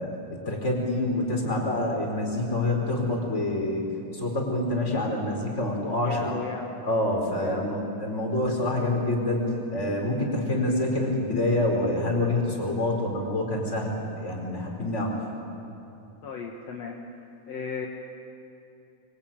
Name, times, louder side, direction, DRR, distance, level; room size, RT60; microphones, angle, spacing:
voice 1, 0.0-3.8 4.1-6.3 6.8-15.2, left 1 dB, 25° left, 1 dB, 4.6 m, -27 dB
voice 2, 6.0-6.7 7.4-7.6 16.2-17.0 17.5-17.9, left 6 dB, 65° left, 0 dB, 2.6 m, -35 dB
25.0 x 24.0 x 9.0 m, 2.7 s
omnidirectional pair, 3.3 m